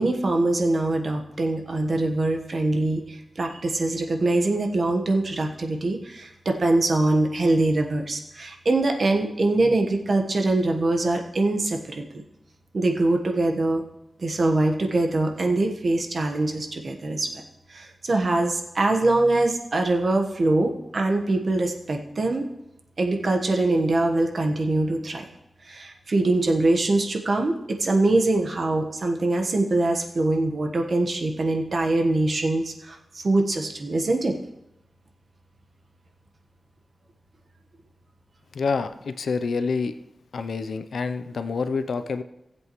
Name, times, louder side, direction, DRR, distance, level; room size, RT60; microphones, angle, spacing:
voice 1, 0.0-12.2 12.7-13.8 14.2-17.3 17.7-22.5 23.0-25.3 25.6-34.4, right 2 dB, 55° right, 3 dB, 1.2 m, -23 dB
voice 2, 38.5-39.9 40.3-42.2, left 4 dB, 85° left, 10 dB, 0.5 m, -27 dB
18.0 x 7.8 x 3.1 m, 0.88 s
wide cardioid pair, 105°, 0 cm